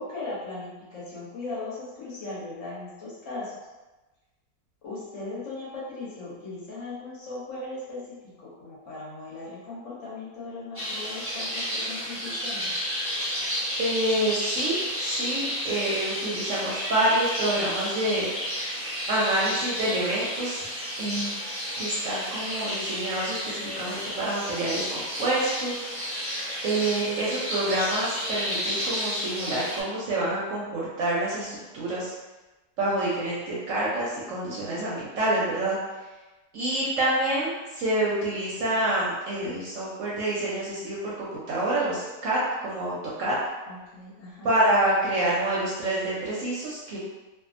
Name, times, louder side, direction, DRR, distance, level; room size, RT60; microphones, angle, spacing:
voice 1, 0.0-3.5 4.8-8.0 8.4-12.7 43.7-44.5, left 2 dB, 60° left, -8 dB, 1.1 m, -38 dB
sound 1, 10.7-29.8, equal, 10° right, 0.7 m, -31 dB
voice 2, 13.8-18.3 19.1-20.7 21.0-21.4 21.8-26.1 26.6-32.1 32.8-35.8 36.5-43.4 44.4-47.0, right 1 dB, 65° right, -6 dB, 0.9 m, -27 dB
2.6 x 2.4 x 2.4 m, 1.1 s
omnidirectional pair, 1.7 m